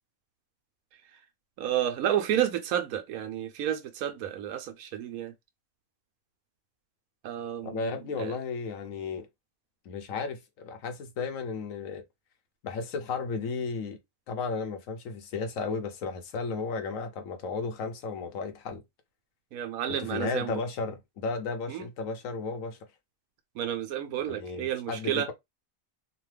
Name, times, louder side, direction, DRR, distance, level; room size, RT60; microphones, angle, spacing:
voice 1, 1.6-5.3 7.2-8.4 19.5-20.5 21.7-21.9 23.5-25.3, right 10 dB, 80° right, 1.0 m, -31 dB
voice 2, 7.6-9.3 9.9-12.0 12.6-14.0 14.3-18.8 19.9-22.8 24.3-25.3, left 4 dB, 70° left, 1.0 m, -34 dB
2.9 x 2.2 x 3.2 m
omnidirectional pair, 1.5 m